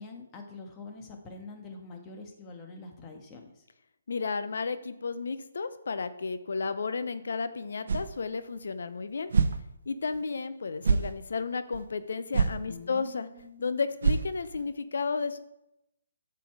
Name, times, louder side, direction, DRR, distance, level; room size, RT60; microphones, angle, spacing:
voice 1, 0.0-3.6 12.7-13.7, left 3 dB, 20° left, 2 dB, 1.7 m, -45 dB
voice 2, 4.1-9.3 9.9-13.3 13.6-15.4, left 4 dB, 65° left, 11 dB, 0.8 m, -33 dB
sound 1, 7.9-8.1 8.5-8.6 9.3-9.6 10.1-10.2 10.8-11.1 11.7-11.8 12.3-12.6 13.0-13.1 13.4-13.5 14.0-14.6, right 5 dB, 60° right, 0.8 m, -25 dB
9.1 x 7.0 x 4.7 m, 0.84 s
figure-of-eight pair, 145°, 0 cm